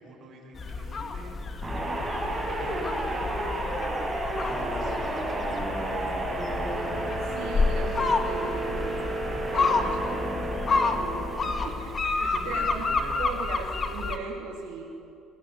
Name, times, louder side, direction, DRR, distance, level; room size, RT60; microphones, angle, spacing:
voice 1, 0.0-1.4 2.5-3.4 4.4-5.7 9.2-10.4 12.1-13.3, right 2 dB, 50° right, 0 dB, 7.3 m, -44 dB
sound 1, 0.6-14.2, left 3 dB, 30° left, 2.1 m, -30 dB
sound 2, 1.6-12.0, right 1 dB, 15° right, 6.7 m, -31 dB
voice 2, 7.2-9.0 9.5-10.2 10.9-12.9 13.2-14.8, right 5 dB, 90° right, -1 dB, 2.8 m, -38 dB
29.0 x 22.5 x 8.0 m, 2.7 s
cardioid pair, 125°, 0 cm